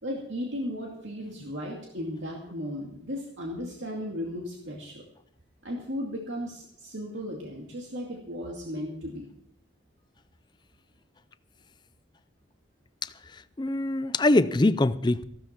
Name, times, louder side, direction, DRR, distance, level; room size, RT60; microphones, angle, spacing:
voice 1, 0.0-5.0 5.6-9.3, equal, 75° right, 2.4 m, -35 dB
voice 2, 13.6-15.2, left 2 dB, 25° left, 0.5 m, -23 dB
15.0 x 13.0 x 4.5 m
head